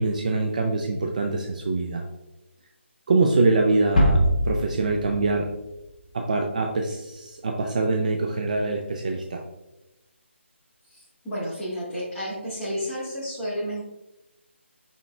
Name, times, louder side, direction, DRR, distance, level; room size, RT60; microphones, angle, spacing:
voice 1, 0.0-2.0 3.1-5.5 6.1-9.4, right 3 dB, 35° right, 2 dB, 0.4 m, -24 dB
sound 1, 4.0-6.0, equal, 40° left, 0.9 m, -23 dB
voice 2, 10.9-13.8, equal, 5° left, -12 dB, 1.5 m, -31 dB
5.8 x 3.6 x 2.3 m, 0.95 s
hypercardioid pair, 170°, 7 cm